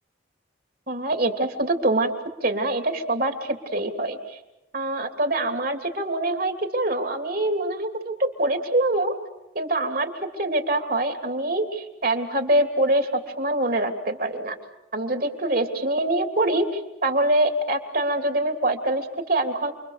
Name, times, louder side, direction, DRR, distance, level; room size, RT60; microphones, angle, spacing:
voice 1, 0.9-2.1 2.4-4.4 4.7-9.1 9.5-10.1 10.4-14.5 14.9-19.7, right 1 dB, 50° right, 5 dB, 3.0 m, -24 dB
28.5 x 23.5 x 6.8 m, 0.96 s
head